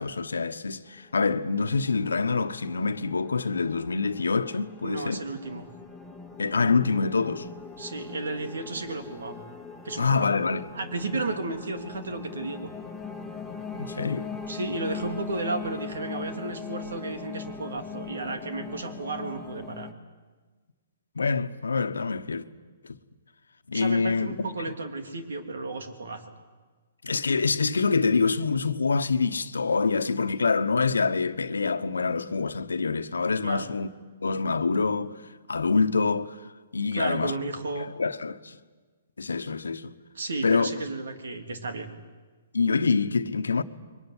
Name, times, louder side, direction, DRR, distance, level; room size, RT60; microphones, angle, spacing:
voice 1, 0.0-5.2 6.4-7.5 10.0-10.7 13.7-14.3 21.1-22.4 22.8-23.0 23.7-24.4 27.0-33.9 34.2-35.2 35.5-37.3 37.8-38.6 39.2-39.9 40.4-40.7 42.5-43.6, left 4 dB, 90° left, 1.2 m, -26 dB
sound 1, 0.9-19.9, left 5 dB, 5° left, 1.9 m, -41 dB
voice 2, 4.8-5.6 7.8-9.4 9.8-10.3 10.7-12.7 14.5-19.9 23.7-26.2 33.4-33.7 36.9-37.9 40.1-41.9, right 3 dB, 80° right, 3.2 m, -33 dB
23.0 x 20.5 x 9.9 m
hypercardioid pair, 135°, 0 cm